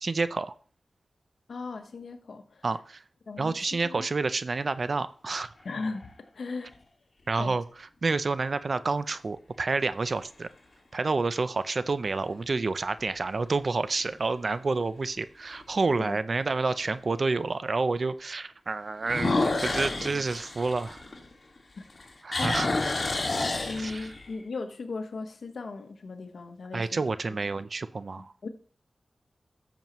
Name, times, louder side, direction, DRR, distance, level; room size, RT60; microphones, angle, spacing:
voice 1, 0.0-0.5 2.6-3.0 3.4-5.5 7.3-10.5 10.9-21.0 22.2-22.7 23.7-24.1 26.7-28.3, right 3 dB, 60° right, 0.6 m, -29 dB
voice 2, 1.5-2.6 3.3-3.6 3.8-4.0 5.6-6.8 7.4-7.5 16.0-16.2 22.3-22.6 23.7-27.0 28.4-28.5, left 3 dB, 75° left, 1.2 m, -37 dB
sound 1, 5.4-6.1 6.7-6.8 12.0-12.5 13.0-13.1 13.6-13.7 14.0-14.1 15.6-15.7 19.0-21.6 21.9-24.3, left 2 dB, 50° left, 2.2 m, -29 dB
13.0 x 7.0 x 3.1 m
cardioid pair, 45°, 0 cm